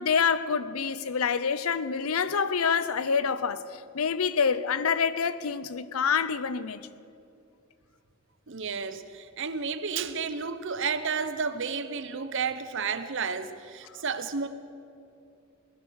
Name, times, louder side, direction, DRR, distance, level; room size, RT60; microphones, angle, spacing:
voice 1, 0.0-6.8, left 6 dB, 85° left, 0.6 m, -27 dB
voice 2, 8.5-14.5, right 5 dB, 60° right, 0.8 m, -32 dB
18.5 x 11.5 x 6.4 m
head